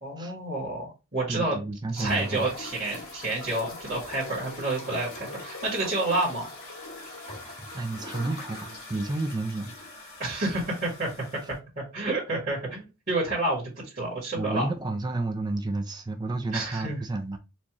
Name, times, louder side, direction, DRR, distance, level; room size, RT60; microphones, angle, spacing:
voice 1, 0.0-1.6 1.9-6.5 10.2-11.2 11.8-14.7 16.5-17.0, right 2 dB, 40° right, 1.8 m, -29 dB
voice 2, 1.3-2.4 7.7-9.7 14.3-17.4, right 2 dB, 20° right, 0.4 m, -31 dB
sound 1, 1.9-11.6, left 2 dB, 80° left, 2.1 m, -41 dB
4.4 x 2.9 x 3.0 m
head